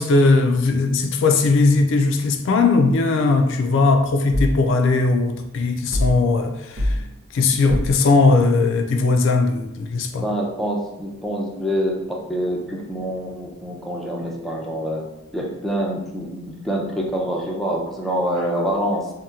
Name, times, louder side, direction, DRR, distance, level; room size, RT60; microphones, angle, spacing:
voice 1, 0.0-7.0 7.3-10.3, left 3 dB, 65° left, 0.3 m, -18 dB
sound 1, 4.3-4.6 5.9-6.2 6.8-7.0 7.7-8.0, left 1 dB, 90° right, 0.7 m, -23 dB
voice 2, 10.2-15.0 15.3-19.1, equal, ahead, 0.4 m, -26 dB
2.7 x 2.1 x 3.5 m
head